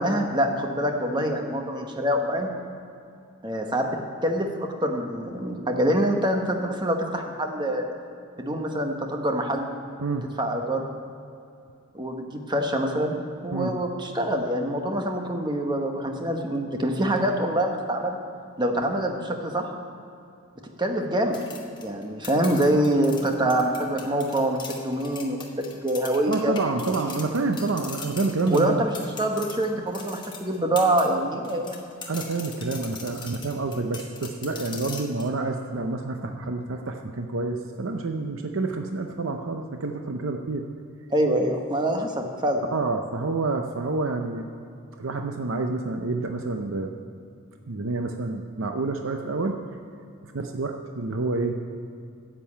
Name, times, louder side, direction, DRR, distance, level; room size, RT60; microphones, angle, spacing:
voice 1, 0.0-2.5 3.4-3.9 4.2-7.9 8.4-9.7 10.4-10.8 11.9-13.1 13.4-18.2 18.6-19.7 20.8-21.4 21.8-26.6 28.5-28.9 29.2-31.8 36.2-36.3 41.1-42.6, right 1 dB, 20° right, 3 dB, 1.0 m, -25 dB
sound 1, 21.3-31.1 31.4-35.3, left 5 dB, 20° left, 1.0 m, -41 dB
voice 2, 26.3-28.9 32.1-40.6 42.7-44.5 45.0-46.9 47.7-49.6 50.2-51.6, right 3 dB, 65° right, 4 dB, 0.6 m, -28 dB
10.0 x 7.6 x 8.5 m, 2.5 s
head